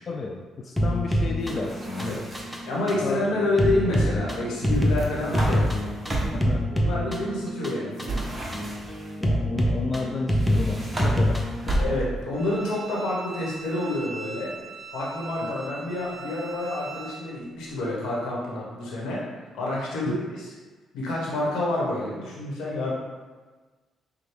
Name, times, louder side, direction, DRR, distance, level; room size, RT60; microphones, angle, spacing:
voice 1, 0.1-2.3 3.0-3.3 6.3-6.7 9.2-11.8 15.4-15.5 20.0-20.1, left 3 dB, 45° left, 1 dB, 0.3 m, -32 dB
sound 1, 0.8-12.0, equal, ahead, 0.6 m, -26 dB
sound 2, 1.5-2.7 4.7-6.6 8.0-9.1 10.3-12.3, right 1 dB, 20° right, 0.9 m, -32 dB
voice 2, 2.6-5.7 6.7-8.5 11.8-14.6 14.9-19.2 19.5-20.5 20.9-22.9, left 1 dB, 85° left, -4 dB, 1.2 m, -28 dB
Bowed string instrument, 12.3-17.2, right 5 dB, 45° right, 0.5 m, -41 dB
5.9 x 2.2 x 3.4 m, 1.3 s
cardioid pair, 90°, 0 cm